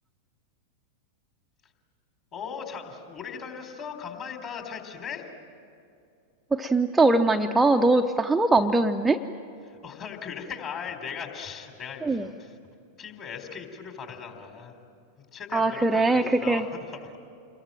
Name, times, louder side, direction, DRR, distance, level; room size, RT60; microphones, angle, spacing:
voice 1, 2.3-5.3 9.6-12.6 13.0-14.8 15.3-17.0, left 6 dB, 35° left, 5 dB, 3.8 m, -38 dB
voice 2, 6.5-9.2 12.0-12.3 15.5-16.6, right 2 dB, 10° right, 4 dB, 0.7 m, -21 dB
28.5 x 22.0 x 9.1 m, 2.6 s
figure-of-eight pair, 90°, 0 cm